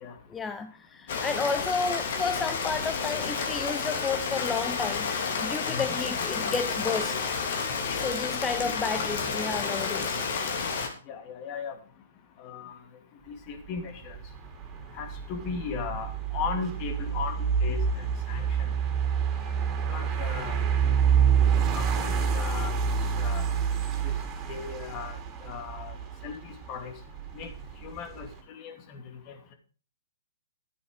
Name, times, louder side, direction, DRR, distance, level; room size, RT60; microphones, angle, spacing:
voice 1, 0.3-7.2 7.9-10.2 19.4-19.5, left 5 dB, 15° left, 0.7 m, -32 dB
Rain, 1.1-10.9, left 5 dB, 55° left, 3.1 m, -30 dB
voice 2, 11.1-11.7 12.4-12.7 13.3-14.2 15.0-18.5 19.9-20.7 21.8-22.7 23.2-23.4 24.0-24.1 24.5-25.2 25.4-25.9 26.2-26.9 27.3-27.5 27.8-29.0 29.3-29.5, left 6 dB, 35° left, 2.7 m, -37 dB
sound 1, 13.6-28.4, right 7 dB, 25° right, 3.2 m, -28 dB
13.0 x 9.3 x 5.2 m
hypercardioid pair, 130°, 0 cm